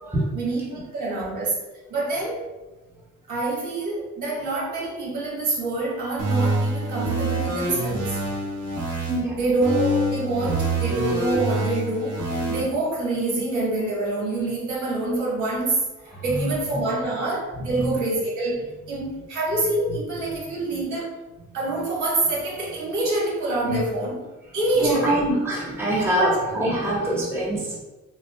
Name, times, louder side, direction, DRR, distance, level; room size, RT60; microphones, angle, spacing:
voice 1, 0.3-1.6 1.9-2.5 3.3-8.2 9.3-15.8 16.2-21.1 21.5-24.2 24.5-25.2 26.2-26.4, right 2 dB, 80° right, -5 dB, 1.3 m, -26 dB
sound 1, 6.2-9.2 9.6-12.6, right 1 dB, 55° right, 1.0 m, -25 dB
voice 2, 9.1-9.4 16.1-16.5 17.6-17.9 20.2-20.4 20.7-20.8 23.7-23.8 24.7-27.8, right 1 dB, 10° right, -5 dB, 1.1 m, -25 dB
6.0 x 2.0 x 2.2 m, 1.1 s
cardioid pair, 90°, 30 cm